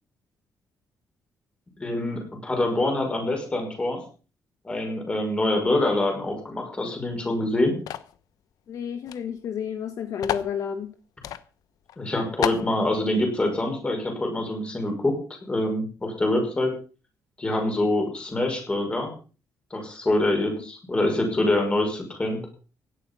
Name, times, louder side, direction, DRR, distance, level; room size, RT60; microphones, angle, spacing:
voice 1, 1.8-4.0 4.6-7.8 12.0-15.2 15.5-16.7 17.4-19.1 19.7-22.4, left 1 dB, 15° left, 3 dB, 5.7 m, -25 dB
sound 1, 7.9-8.2 9.1-9.2 9.4-9.5 10.2-10.5 11.2-11.4 11.9-12.0 12.4-12.7, left 11 dB, 75° left, 1.0 m, -29 dB
voice 2, 8.7-10.9, left 7 dB, 55° left, 8 dB, 1.4 m, -31 dB
16.5 x 11.5 x 5.5 m, 0.37 s
cardioid pair, 175°, 6 cm